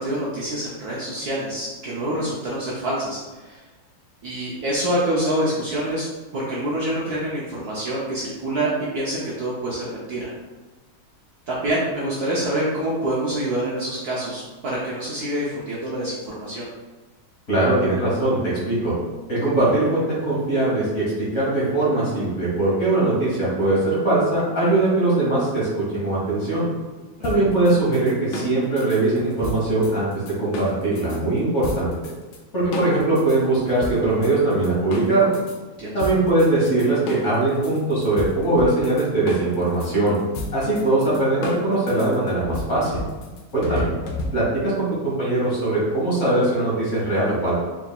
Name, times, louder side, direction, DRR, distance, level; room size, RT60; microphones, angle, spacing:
voice 1, 0.0-3.6 4.2-6.1 6.3-10.3 11.5-16.7 27.2-27.4 35.8-36.1 43.7-43.8, right 1 dB, 65° right, -6 dB, 1.0 m, -26 dB
voice 2, 17.5-18.9 19.3-21.0 21.3-26.7 27.2-30.1 30.4-31.9 32.5-35.3 35.9-40.1 40.5-42.9 43.5-43.9 44.3-47.5, right 2 dB, 40° left, -7 dB, 1.5 m, -21 dB
sound 1, 27.2-31.2 31.6-32.4 32.7-35.6 36.0-44.7, left 2 dB, 75° left, 1.2 m, -32 dB
4.5 x 3.5 x 2.2 m, 1.2 s
omnidirectional pair, 2.2 m